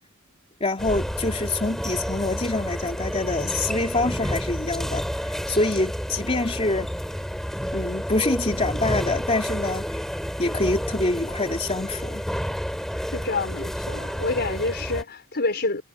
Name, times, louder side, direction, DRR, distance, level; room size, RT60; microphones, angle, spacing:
voice 1, 0.6-6.9 7.7-9.8 10.4-12.2, left 2 dB, 30° left, 3.1 m, -26 dB
sound 1, 0.8-15.0, equal, ahead, 4.9 m, -30 dB
voice 2, 13.1-15.8, left 3 dB, 50° left, 4.5 m, -27 dB
head